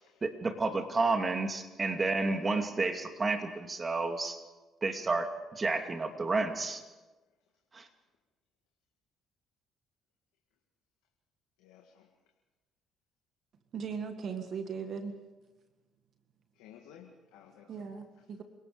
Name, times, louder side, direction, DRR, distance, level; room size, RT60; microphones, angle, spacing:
voice 1, 0.2-4.4 4.8-6.8 7.7-7.8, right 3 dB, 30° right, 6 dB, 2.6 m, -31 dB
voice 2, 11.6-12.1 16.5-17.9, left 9 dB, 85° left, 1 dB, 2.1 m, -55 dB
voice 3, 13.7-15.2 17.6-18.4, right 6 dB, 60° right, 7 dB, 1.8 m, -38 dB
28.5 x 18.0 x 5.2 m, 1.2 s
supercardioid pair, 65°, 0 cm